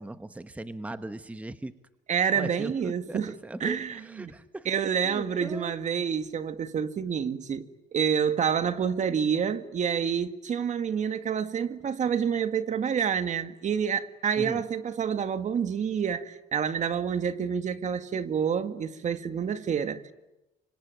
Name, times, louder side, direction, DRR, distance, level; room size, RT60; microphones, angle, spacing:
voice 1, 0.0-1.7 2.4-4.7 5.0-5.7 14.4-14.6, right 1 dB, 10° right, 1.1 m, -38 dB
voice 2, 2.1-3.3 3.6-4.3 4.7-20.1, right 7 dB, 45° right, 1.8 m, -28 dB
26.0 x 25.0 x 9.1 m
cardioid pair, 110°, 17 cm